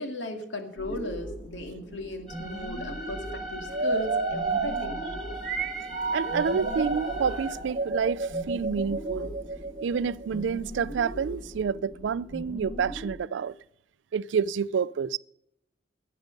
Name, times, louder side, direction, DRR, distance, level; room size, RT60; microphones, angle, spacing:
voice 1, 0.0-5.1, left 1 dB, 85° left, 2.2 m, -36 dB
sound 1, 0.8-13.1, equal, 25° left, 3.4 m, -40 dB
sound 2, 2.3-7.5, equal, ahead, 3.5 m, -40 dB
sound 3, 3.7-10.4, right 3 dB, 50° right, 0.8 m, -31 dB
voice 2, 6.1-9.3 9.8-13.5 14.1-15.2, right 6 dB, 85° right, 0.4 m, -28 dB
14.5 x 9.2 x 5.2 m
head